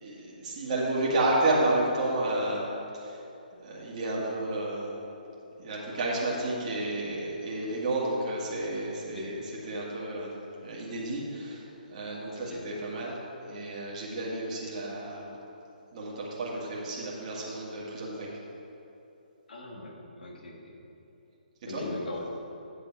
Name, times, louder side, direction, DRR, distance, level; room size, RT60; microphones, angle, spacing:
voice 1, 0.0-3.2 3.6-5.0 5.6-13.2 13.4-15.3 15.9-18.3 21.7-21.8, right 2 dB, 40° right, -5 dB, 1.9 m, -31 dB
voice 2, 19.5-20.7 21.7-22.2, left 2 dB, 70° left, -1 dB, 1.7 m, -39 dB
8.7 x 6.9 x 4.5 m, 2.9 s
hypercardioid pair, 145°, 5 cm